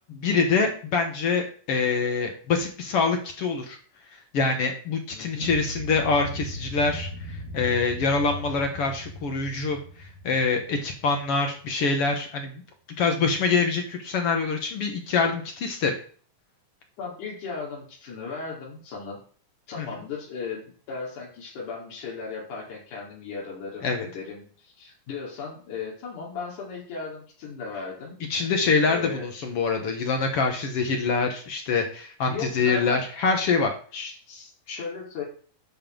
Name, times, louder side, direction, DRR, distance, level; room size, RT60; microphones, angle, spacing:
voice 1, 0.1-3.8 4.3-12.6 12.9-15.9 19.8-19.9 23.8-24.1 28.2-33.7, left 4 dB, 55° left, 4 dB, 2.0 m, -25 dB
voice 2, 5.1-5.5 17.0-19.2 19.7-29.3 32.3-33.1 33.9-35.2, left 5 dB, 75° left, -4 dB, 4.2 m, -36 dB
sound 1, 5.4-11.5, equal, 80° right, 3.3 m, -38 dB
10.5 x 6.8 x 3.8 m, 0.43 s
omnidirectional pair, 3.6 m